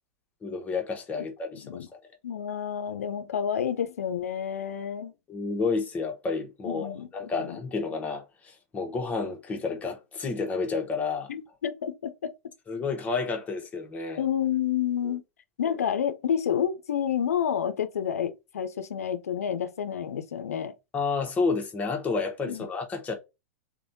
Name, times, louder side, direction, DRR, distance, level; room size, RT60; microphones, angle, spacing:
voice 1, 0.4-1.9 5.3-11.3 12.7-14.2 15.0-15.1 20.9-23.1, left 4 dB, 20° left, 0.9 m, -30 dB
voice 2, 2.2-5.1 6.7-7.1 7.4-7.6 11.3-12.3 14.2-15.2 15.6-20.7 22.5-22.6, left 9 dB, 80° left, 0.5 m, -29 dB
3.1 x 2.2 x 2.7 m
hypercardioid pair, 105°, 8 cm